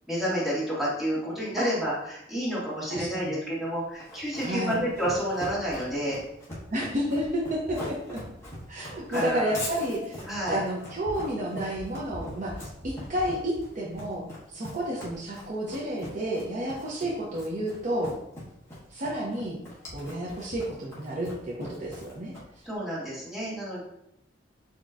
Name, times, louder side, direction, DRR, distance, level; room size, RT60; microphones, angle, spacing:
voice 1, 0.1-6.2 9.1-9.5 10.3-10.6 22.7-23.8, equal, ahead, -8 dB, 1.7 m, -30 dB
voice 2, 2.9-3.4 4.4-4.8 6.7-8.2 8.7-12.5 12.8-14.2 14.5-18.1 18.9-19.6 19.9-22.3, right 1 dB, 45° right, -4 dB, 0.7 m, -31 dB
Run, 4.0-22.7, left 1 dB, 15° left, 1.5 m, -41 dB
7.2 x 2.9 x 2.5 m, 0.81 s
head